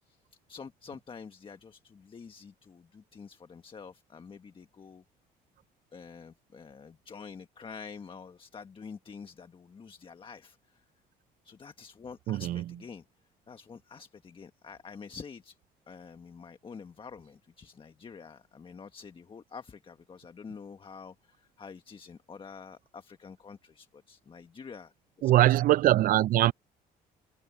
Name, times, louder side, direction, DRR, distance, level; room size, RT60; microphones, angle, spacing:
voice 1, 0.0-5.0 5.9-10.8 11.4-13.0 13.5-15.6 15.9-25.5, left 5 dB, 30° left, 1.4 m, -47 dB
voice 2, 12.3-12.6 25.2-26.5, right 14 dB, 55° right, 0.4 m, -22 dB
cardioid pair, 110°, 17 cm